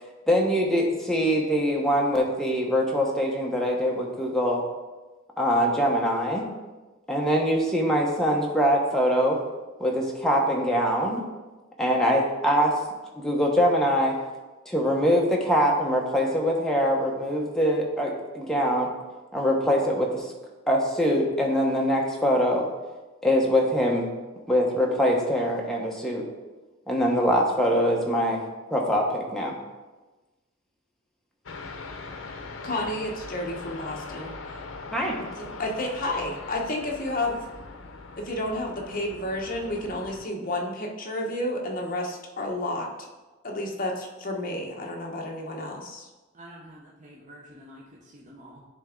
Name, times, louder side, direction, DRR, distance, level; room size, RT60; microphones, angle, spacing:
voice 1, 0.3-4.6 5.4-6.5 7.1-9.4 9.8-11.2 11.8-12.7 13.2-14.2 14.6-18.9 19.3-20.3 20.7-22.7 23.2-24.1 24.5-26.3 26.9-28.4 28.7-29.6 34.9-35.2, equal, ahead, -2 dB, 1.0 m, -23 dB
sound 1, 31.5-40.2, left 3 dB, 70° left, 0.7 m, -41 dB
voice 2, 32.6-34.4 35.4-37.4 38.2-42.9 43.4-46.1, left 1 dB, 45° left, 0 dB, 1.0 m, -31 dB
voice 3, 46.3-48.6, equal, 35° right, -3 dB, 0.7 m, -48 dB
10.5 x 3.5 x 3.8 m, 1.2 s
head